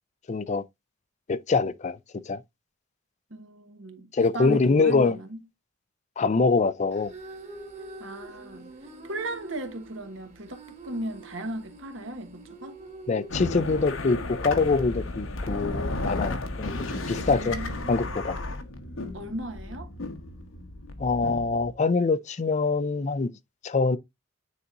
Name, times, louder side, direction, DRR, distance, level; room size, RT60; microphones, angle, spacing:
voice 1, 0.3-0.6 1.3-2.0 2.3-2.4 4.1-5.2 6.2-7.1 13.1-16.8 17.1-17.6 17.9-18.4 21.0-23.3 23.6-24.0, left 4 dB, 35° left, 0.4 m, -24 dB
voice 2, 3.3-5.4 8.0-8.7 9.0-12.8 17.2-18.0 19.1-19.9, right 1 dB, 75° right, 1.3 m, -36 dB
sound 1, 6.9-15.1, right 3 dB, 35° right, 1.8 m, -46 dB
sound 2, 13.3-21.7, left 2 dB, 85° left, 1.1 m, -34 dB
9.4 x 4.1 x 2.5 m
head